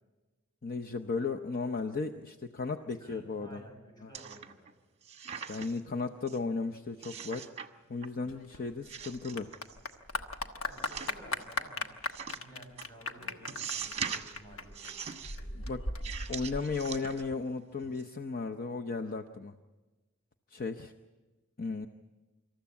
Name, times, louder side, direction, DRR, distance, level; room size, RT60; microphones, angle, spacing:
voice 1, 0.6-3.6 4.0-4.1 5.5-7.5 7.9-9.5 15.5-15.8 16.3-19.5 20.5-20.9 21.6-21.9, left 4 dB, 40° left, 6 dB, 0.7 m, -35 dB
voice 2, 2.9-4.7 10.6-11.9 12.3-14.9 15.3-15.5, right 1 dB, 20° left, 0 dB, 5.8 m, -53 dB
sound 1, 4.1-4.7 5.0-5.9 6.3-6.4 7.0-7.7 8.0-8.5 8.8-10.0 10.7-11.4 12.1-12.4 12.8-12.9 13.5-14.4 14.7-15.4 16.0-17.5 17.8-18.0, right 7 dB, 30° right, 1.2 m, -41 dB
Clapping / Applause, 8.3-17.3, left 2 dB, 70° left, 1.3 m, -39 dB
26.5 x 14.0 x 8.5 m, 1.2 s
head